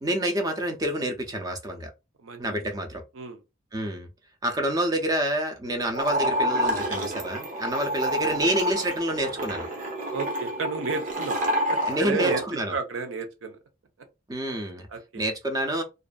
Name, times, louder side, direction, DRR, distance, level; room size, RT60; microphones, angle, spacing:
voice 1, 0.0-1.9 2.4-3.0 3.7-4.1 4.4-9.7 11.9-12.8 14.3-14.9 15.1-15.8, right 1 dB, 20° right, 0.4 m, -28 dB
voice 2, 2.2-2.6 3.1-3.4 8.3-8.4 10.1-11.4 11.7-12.4 12.7-13.6 14.9-15.2, right 4 dB, 90° right, 0.6 m, -32 dB
sound 1, 5.9-12.4, right 1 dB, 40° right, 0.8 m, -28 dB
2.5 x 2.4 x 2.2 m
head